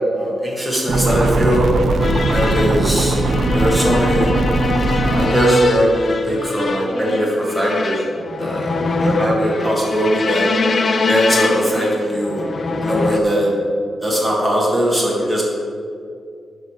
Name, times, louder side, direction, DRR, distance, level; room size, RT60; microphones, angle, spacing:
voice 1, 0.1-1.7 2.3-3.2 3.5-4.4 4.6-4.7 5.0-8.0 8.4-8.7 9.0-10.5 11.0-12.4 12.8-13.5 14.0-15.4, equal, ahead, -4 dB, 1.8 m, -19 dB
sound 1, 0.9-5.3, right 2 dB, 55° right, 0.8 m, -19 dB
sound 2, 2.0-13.2, left 3 dB, 35° left, 0.5 m, -23 dB
11.0 x 5.5 x 4.9 m, 2.3 s
wide cardioid pair, 170°, 0 cm